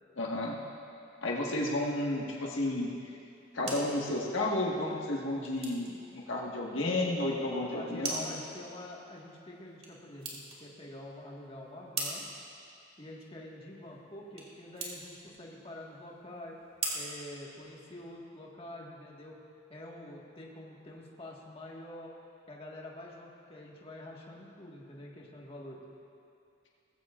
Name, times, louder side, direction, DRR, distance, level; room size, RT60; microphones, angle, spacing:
voice 1, 0.2-0.6 1.2-2.9 3.5-8.4, left 1 dB, 80° left, -2 dB, 1.7 m, -32 dB
sound 1, 3.2-18.2, right 3 dB, 35° right, 2.5 m, -44 dB
voice 2, 7.4-12.2 13.0-16.6 16.9-19.4 19.7-22.1 22.5-25.8, left 1 dB, 30° left, -3 dB, 1.7 m, -47 dB
20.0 x 15.5 x 2.5 m, 2.6 s
head